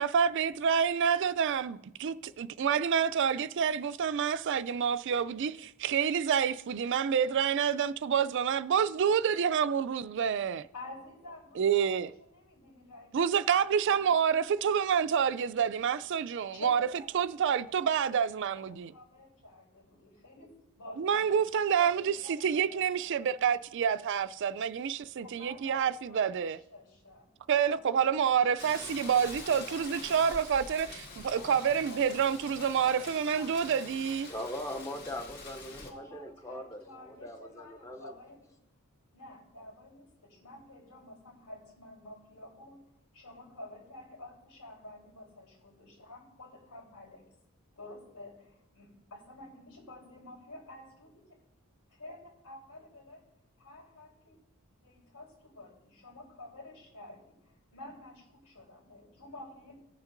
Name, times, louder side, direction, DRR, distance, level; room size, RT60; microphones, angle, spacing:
voice 1, 0.0-10.7 11.6-12.1 13.1-16.9 17.1-18.9 21.0-26.6 27.5-34.3, right 7 dB, 55° right, 0.3 m, -28 dB
voice 2, 10.7-14.5 16.5-21.4 21.7-23.2 25.2-27.3 27.6-29.4 29.7-30.1 31.3-34.0 35.7-38.6 39.1-42.9 43.1-47.2 47.8-51.4 51.9-53.2 53.6-54.4 54.7-59.8, left 2 dB, 85° left, 3.7 m, -50 dB
Rain, 28.6-35.9, left 3 dB, 45° left, 1.8 m, -46 dB
voice 3, 34.3-38.1, left 1 dB, 15° left, 0.6 m, -41 dB
18.5 x 7.1 x 2.6 m
head